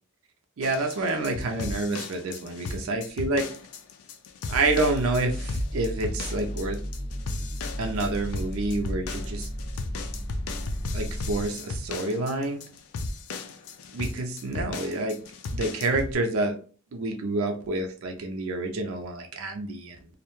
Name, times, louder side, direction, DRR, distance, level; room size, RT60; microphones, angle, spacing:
sound 1, 0.6-16.1, left 3 dB, 80° left, 0.4 m, -36 dB
voice 1, 0.6-3.4 4.5-6.8 7.8-9.5 10.9-12.6 13.9-15.2 15.5-16.6 16.9-20.0, right 2 dB, 70° right, 5 dB, 0.4 m, -28 dB
sound 2, 4.6-11.5, equal, 20° right, 0.5 m, -34 dB
2.3 x 2.1 x 2.9 m, 0.39 s
head